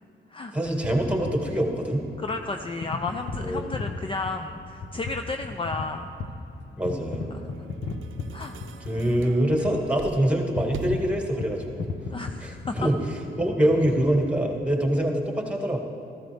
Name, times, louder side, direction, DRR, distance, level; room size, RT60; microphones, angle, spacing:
voice 1, 0.5-2.1 3.4-3.7 6.8-7.3 8.9-11.9 12.4-13.0 13.4-15.8, right 1 dB, 5° right, 1 dB, 2.0 m, -24 dB
sound 1, 0.6-15.1, left 3 dB, 65° left, 1.0 m, -37 dB
voice 2, 2.2-6.1 7.3-7.7 8.3-8.5 12.1-12.9, left 3 dB, 25° left, 5 dB, 0.5 m, -33 dB
sound 2, 7.5-11.9, right 5 dB, 90° right, 0.6 m, -42 dB
14.0 x 14.0 x 3.5 m, 2.7 s
cardioid pair, 75°, 20 cm